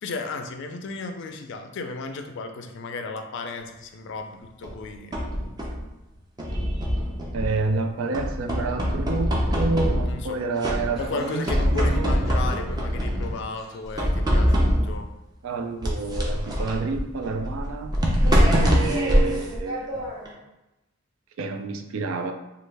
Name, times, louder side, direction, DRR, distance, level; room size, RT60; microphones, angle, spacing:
voice 1, 0.0-5.2 10.1-10.4 11.0-15.1 18.2-18.6, left 3 dB, 60° left, 6 dB, 0.4 m, -34 dB
sound 1, 4.6-5.9 6.4-7.7 8.1-10.3 10.6-11.2 11.4-13.4 14.0-15.1 15.8-20.3, equal, 20° right, 0.5 m, -23 dB
voice 2, 7.3-12.2 15.4-17.9 18.5-20.0 21.4-22.3, right 3 dB, 90° right, 6 dB, 0.4 m, -29 dB
Laughter, 10.9-13.1 13.5-14.2 14.7-14.8 15.7-15.8, equal, ahead, 1.1 m, -44 dB
3.1 x 2.3 x 3.3 m, 0.98 s
head